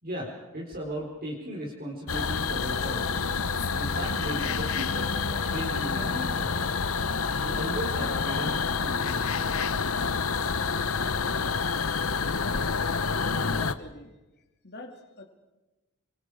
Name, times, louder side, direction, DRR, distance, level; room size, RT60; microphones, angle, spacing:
voice 1, 0.0-3.4 3.7-6.8 7.4-9.4, equal, 45° right, -3 dB, 4.5 m, -37 dB
sound 1, 2.1-13.7, left 5 dB, 70° left, 1.0 m, -28 dB
voice 2, 12.4-14.1 14.6-15.2, left 2 dB, 50° left, 2 dB, 2.9 m, -44 dB
29.5 x 24.0 x 5.0 m, 1.1 s
head